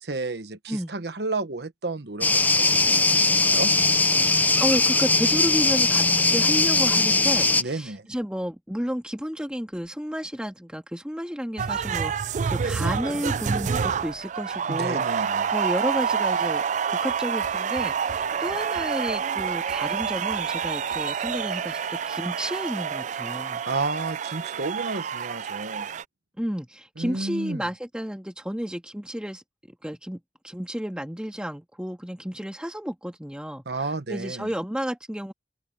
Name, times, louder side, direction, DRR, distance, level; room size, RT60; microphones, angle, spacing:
voice 1, 0.0-3.7 7.6-8.1 14.7-15.5 23.6-25.9 27.0-27.6 33.7-34.5, right 3 dB, 65° right, 1.2 m, -32 dB
sound 1, 2.2-7.6, left 3 dB, 10° left, 0.6 m, -20 dB
voice 2, 4.5-23.6 26.4-29.4 29.8-33.6 34.1-35.3, equal, 5° right, 1.9 m, -32 dB
sound 2, 11.6-26.0, right 6 dB, 45° right, 0.4 m, -28 dB
open air
head